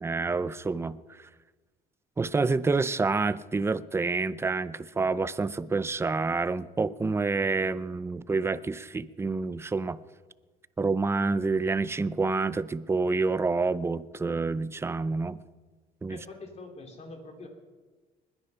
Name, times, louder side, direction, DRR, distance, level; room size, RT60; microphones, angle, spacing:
voice 1, 0.0-1.3 2.2-10.0 10.8-15.4 16.0-16.2, right 3 dB, 15° right, 16 dB, 0.5 m, -28 dB
voice 2, 16.1-17.5, left 3 dB, 40° left, 3 dB, 3.2 m, -44 dB
20.5 x 9.9 x 5.7 m, 1.3 s
cardioid pair, 110°, 17 cm